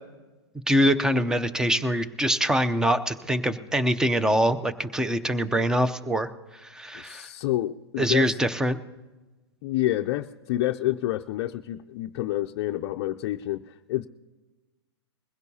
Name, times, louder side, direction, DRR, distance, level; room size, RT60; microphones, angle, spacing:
voice 1, 0.7-6.3 6.6-7.3 8.0-8.8, equal, 5° right, 12 dB, 0.6 m, -24 dB
voice 2, 6.9-8.4 9.6-14.1, left 14 dB, 50° left, 4 dB, 0.4 m, -28 dB
21.5 x 16.0 x 2.8 m, 1.2 s
hypercardioid pair, 120°, 14 cm